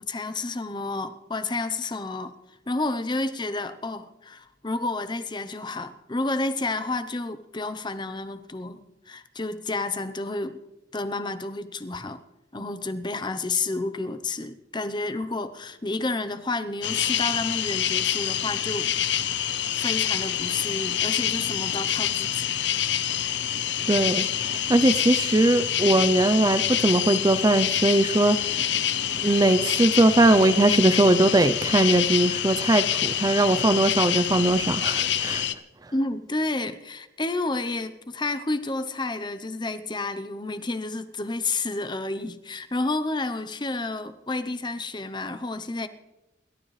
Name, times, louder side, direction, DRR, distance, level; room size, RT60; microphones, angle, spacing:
voice 1, 0.0-2.3 2.7-8.8 9.1-10.6 10.9-12.2 12.5-19.4 19.8-22.5 35.9-45.9, left 2 dB, 25° left, 0.8 m, -30 dB
sound 1, 16.8-35.5, left 10 dB, 85° left, 0.8 m, -26 dB
voice 2, 23.9-28.6 29.2-35.4, right 2 dB, 20° right, 0.5 m, -20 dB
28.5 x 12.5 x 3.3 m
head